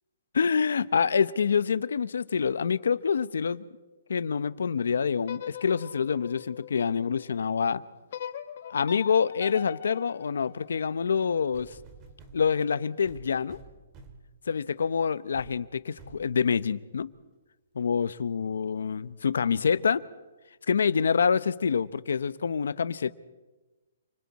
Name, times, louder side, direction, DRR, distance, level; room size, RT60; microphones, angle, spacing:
voice 1, 0.3-3.6 4.1-7.8 8.7-11.7 12.3-13.6 14.5-17.1 17.7-20.0 20.7-23.1, left 6 dB, 80° left, 15 dB, 0.9 m, -26 dB
sound 1, 5.2-7.4 8.1-11.2, left 10 dB, 45° left, 1.2 m, -42 dB
sound 2, 11.5-12.4 13.1-14.3 14.8-15.0 15.3-15.6 16.0-16.3 17.0-17.1, right 4 dB, 20° right, 2.1 m, -50 dB
29.0 x 25.0 x 4.2 m, 1.2 s
hypercardioid pair, 175°, 0 cm